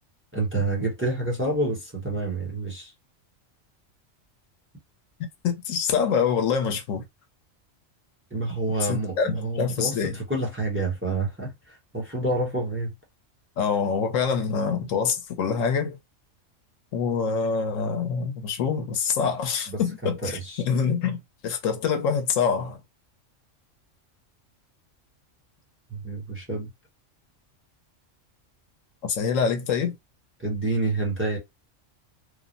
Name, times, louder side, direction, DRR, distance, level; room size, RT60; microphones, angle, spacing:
voice 1, 0.3-2.9 8.3-12.9 19.7-20.6 25.9-26.7 30.4-31.4, right 2 dB, 10° right, 0.9 m, -28 dB
voice 2, 5.4-7.0 8.9-10.2 13.6-16.0 16.9-21.2 21.4-22.8 29.0-29.9, left 6 dB, 85° left, 1.0 m, -25 dB
3.2 x 2.0 x 2.5 m
omnidirectional pair, 1.3 m